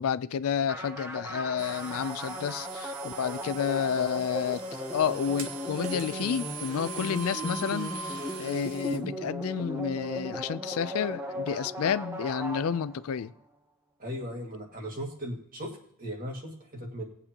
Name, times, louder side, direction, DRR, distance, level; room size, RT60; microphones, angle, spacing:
voice 1, 0.0-4.6 4.9-13.3, left 7 dB, 75° left, 0.4 m, -30 dB
sound 1, 0.7-13.2, equal, 10° right, 0.8 m, -37 dB
sound 2, 1.6-9.0, right 4 dB, 80° right, 1.4 m, -42 dB
voice 2, 14.0-17.0, equal, 40° right, 2.0 m, -37 dB
18.5 x 8.1 x 2.9 m
head